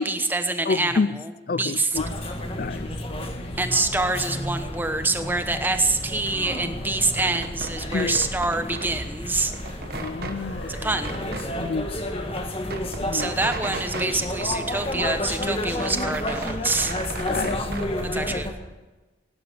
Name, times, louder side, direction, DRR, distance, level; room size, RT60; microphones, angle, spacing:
voice 1, 0.0-1.3 1.6-2.0 3.6-9.5 10.7-11.1 13.1-16.9 18.0-18.5, right 2 dB, 10° right, 8 dB, 0.9 m, -26 dB
voice 2, 0.7-1.1 1.5-2.0 2.6-2.9 7.9-8.2 9.9-10.7 11.6-11.9 13.0-13.4 17.3-17.6, left 4 dB, 50° left, 18 dB, 0.4 m, -27 dB
sound 1, 1.9-18.5, left 1 dB, 30° left, 1.5 m, -31 dB
sound 2, 7.0-9.0 9.3-10.4 11.0-11.5 11.9-12.0 12.2-14.1 14.4-15.3 15.6-18.0, right 3 dB, 50° right, 1.2 m, -36 dB
sound 3, 10.2-11.8 13.2-14.8, left 1 dB, 80° left, 4.9 m, -42 dB
17.0 x 11.0 x 6.8 m, 1.2 s
head